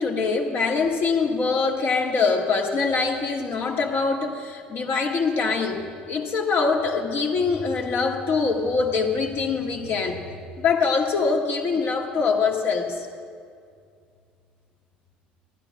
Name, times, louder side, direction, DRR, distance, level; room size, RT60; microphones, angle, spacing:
voice 1, 0.0-10.3 10.6-13.1, left 4 dB, 45° left, 1 dB, 1.9 m, -24 dB
14.0 x 11.5 x 6.1 m, 2.2 s
hypercardioid pair, 60°, 5 cm